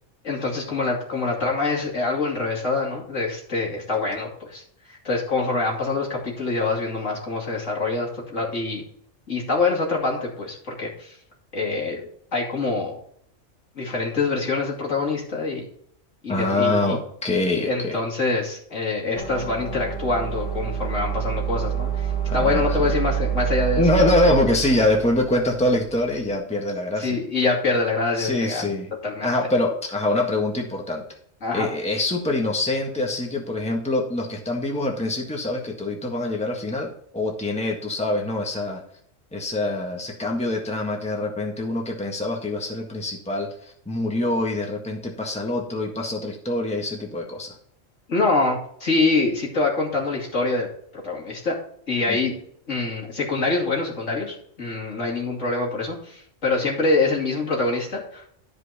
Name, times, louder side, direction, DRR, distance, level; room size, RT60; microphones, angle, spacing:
voice 1, 0.2-4.6 4.9-8.8 9.3-11.2 11.5-12.0 12.3-12.9 13.7-15.7 16.2-17.0 17.7-23.9 27.0-28.7 29.0-29.3 31.4-31.7 48.1-50.7 50.9-51.6 51.9-52.3 52.7-58.2, left 3 dB, 65° left, -2 dB, 3.0 m, -25 dB
voice 2, 16.3-18.0 22.2-22.9 23.8-27.2 28.2-28.9 29.2-31.0 31.5-38.8 39.3-47.5 52.1-52.2, left 2 dB, 5° left, 0 dB, 1.6 m, -24 dB
sound 1, 19.2-26.2, right 9 dB, 20° right, 2.8 m, -28 dB
13.0 x 5.3 x 4.2 m, 0.65 s
omnidirectional pair, 1.4 m